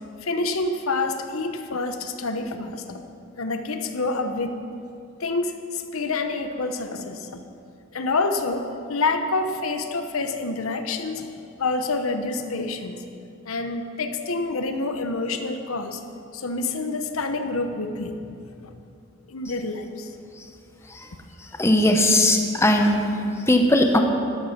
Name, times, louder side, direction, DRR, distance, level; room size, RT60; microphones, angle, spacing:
voice 1, 0.2-3.0 3.4-4.6 5.2-7.4 7.9-11.3 11.6-13.0 13.5-16.0 16.3-18.1 18.6-18.7 19.3-20.1, left 3 dB, 85° left, 7 dB, 1.0 m, -27 dB
voice 2, 21.6-24.0, left 1 dB, 15° left, 4 dB, 0.9 m, -19 dB
13.0 x 11.5 x 5.9 m, 2.5 s
head